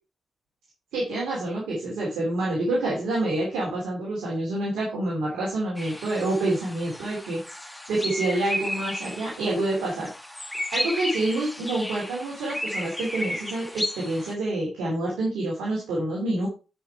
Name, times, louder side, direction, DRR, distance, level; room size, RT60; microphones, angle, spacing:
voice 1, 0.9-10.1 10.7-16.5, right 2 dB, 90° right, -4 dB, 2.8 m, -27 dB
sound 1, 5.8-14.3, left 1 dB, 5° left, 1.7 m, -34 dB
9.9 x 5.0 x 4.5 m, 0.32 s
supercardioid pair, 50°, 0 cm